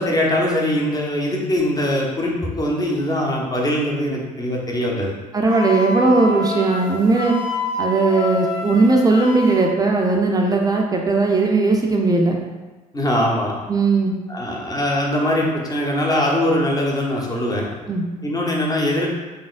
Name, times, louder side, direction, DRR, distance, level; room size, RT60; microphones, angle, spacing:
voice 1, 0.0-5.1 12.9-13.5 14.3-17.7 18.2-19.1, left 1 dB, 20° left, -2 dB, 1.0 m, -21 dB
voice 2, 5.3-7.4 7.8-12.4 13.7-14.2 17.9-18.0, right 3 dB, 20° right, 1 dB, 0.5 m, -18 dB
Wind instrument woodwind instrument, 5.5-9.7, left 3 dB, 50° left, 1.2 m, -28 dB
4.0 x 3.8 x 2.5 m, 1.2 s
figure-of-eight pair, 55°, 20 cm